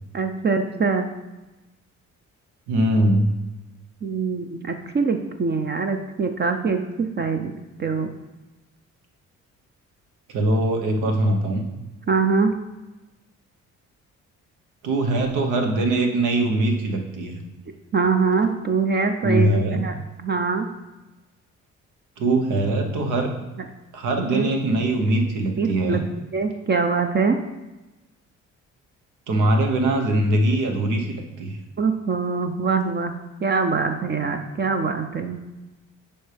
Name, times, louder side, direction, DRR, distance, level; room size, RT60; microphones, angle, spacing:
voice 1, 0.1-1.1 4.0-6.8 7.2-8.1 12.1-12.6 17.9-20.7 24.2-24.5 25.6-26.0 26.3-27.4 31.8-33.1 33.4-35.4, right 4 dB, 35° right, 6 dB, 0.6 m, -23 dB
voice 2, 2.7-3.3 10.3-11.6 14.8-17.4 19.2-19.8 22.2-23.3 23.9-26.0 29.3-31.6, right 1 dB, 90° right, 3 dB, 1.1 m, -22 dB
8.6 x 5.4 x 3.4 m, 1.1 s
cardioid pair, 90°, 30 cm